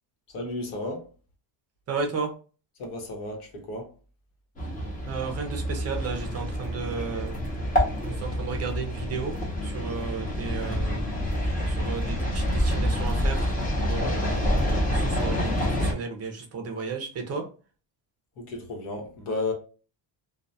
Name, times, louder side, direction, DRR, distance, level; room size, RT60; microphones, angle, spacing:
voice 1, 0.3-1.1 2.8-3.9 18.4-19.5, left 2 dB, 85° left, 1.0 m, -33 dB
voice 2, 1.9-2.3 5.1-7.4 8.0-9.3 9.6-11.1 11.4-13.5 13.8-17.4, right 5 dB, 35° right, 0.4 m, -34 dB
sound 1, 4.6-15.9, equal, 15° left, 0.6 m, -27 dB
2.2 x 2.2 x 2.6 m
cardioid pair, 165°, 49 cm